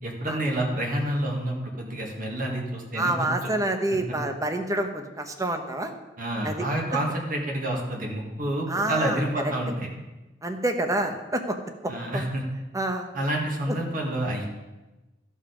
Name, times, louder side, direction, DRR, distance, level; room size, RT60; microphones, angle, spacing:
voice 1, 0.0-3.3 3.9-4.0 6.2-9.9 11.9-12.4 13.1-14.5, right 1 dB, 50° right, 0 dB, 1.7 m, -28 dB
voice 2, 3.0-5.9 6.4-6.6 8.7-9.2 10.4-11.6 11.8-12.2 12.7-13.1, right 1 dB, 20° right, 6 dB, 0.9 m, -27 dB
14.0 x 5.5 x 5.0 m, 1.1 s
head